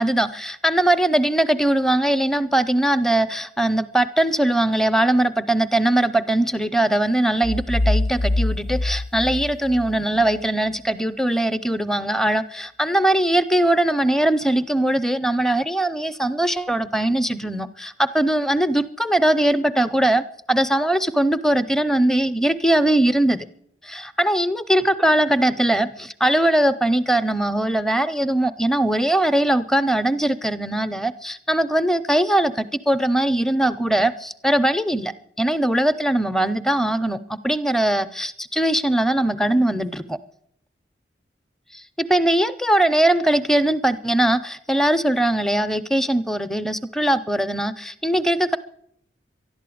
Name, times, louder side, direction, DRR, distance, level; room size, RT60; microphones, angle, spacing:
voice 1, 0.0-23.5 23.8-40.2 41.7-48.6, right 1 dB, ahead, 13 dB, 0.5 m, -21 dB
sound 1, 7.4-10.3, left 1 dB, 50° left, 0.5 m, -24 dB
12.0 x 12.0 x 8.5 m, 0.71 s
head